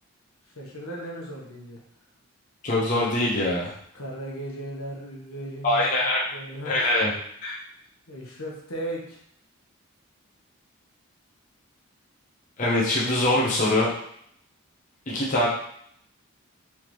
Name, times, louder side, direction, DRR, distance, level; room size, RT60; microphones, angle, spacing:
voice 1, 0.5-1.8 3.9-5.8 6.3-6.8 8.1-9.2 15.1-15.4, right 1 dB, 75° left, -2 dB, 1.2 m, -36 dB
voice 2, 2.6-3.7 5.6-6.2 6.6-7.1 7.4-7.6 12.6-13.9 15.1-15.5, left 1 dB, 35° left, -6 dB, 0.9 m, -23 dB
4.6 x 3.6 x 3.1 m, 0.68 s
head